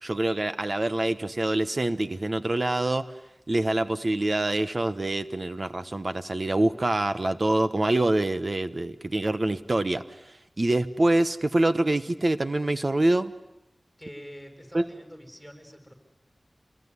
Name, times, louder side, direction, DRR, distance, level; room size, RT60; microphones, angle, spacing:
voice 1, 0.0-3.1 3.5-13.3 14.7-14.8, right 2 dB, 50° right, 12 dB, 1.1 m, -25 dB
voice 2, 14.0-15.9, equal, 5° right, 5 dB, 7.4 m, -45 dB
26.5 x 22.5 x 9.7 m, 0.90 s
wide cardioid pair, 55°, 0 cm